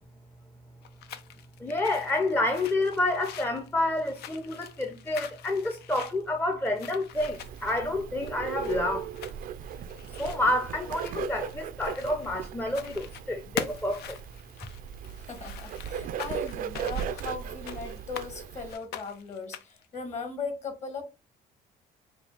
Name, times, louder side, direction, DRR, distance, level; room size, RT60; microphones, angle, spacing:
sound 1, 0.8-12.4 12.7-13.2 13.6-18.3 18.7-19.9, left 9 dB, 70° left, 0.5 m, -43 dB
voice 1, 1.6-9.1 10.2-14.2, left 2 dB, 10° left, 0.6 m, -29 dB
Bird, 7.1-18.7, right 8 dB, 55° right, 0.4 m, -37 dB
voice 2, 15.1-21.0, left 4 dB, 45° left, 1.6 m, -38 dB
4.8 x 2.3 x 3.4 m
cardioid pair, 110°, 17 cm